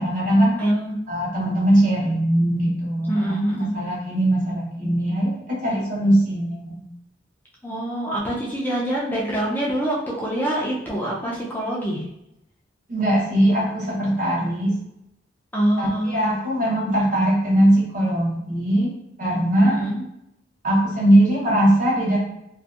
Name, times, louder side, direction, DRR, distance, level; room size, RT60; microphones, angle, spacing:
voice 1, 0.0-0.6 1.1-3.4 3.7-6.8 12.9-14.7 15.8-18.9 19.2-19.8 20.6-22.2, right 1 dB, 45° right, -4 dB, 0.8 m, -20 dB
voice 2, 0.6-1.0 3.1-3.8 7.6-12.0 15.5-16.3 19.6-20.1, right 1 dB, 10° left, -5 dB, 0.4 m, -25 dB
2.5 x 2.1 x 2.3 m, 0.84 s
head